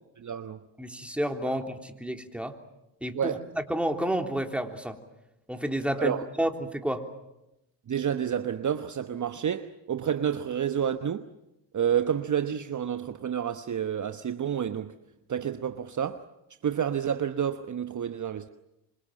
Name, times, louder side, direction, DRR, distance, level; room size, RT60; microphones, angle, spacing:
voice 1, 0.2-0.6 1.4-1.5 3.1-3.4 6.0-6.2 7.9-11.3 11.7-14.9 15.3-16.2 16.6-18.5, right 8 dB, 40° right, 1.1 m, -29 dB
voice 2, 0.8-2.6 3.0-3.4 3.7-5.0 5.5-7.1, right 1 dB, ahead, 3.5 m, -30 dB
26.5 x 26.0 x 7.4 m
hypercardioid pair, 55°, 47 cm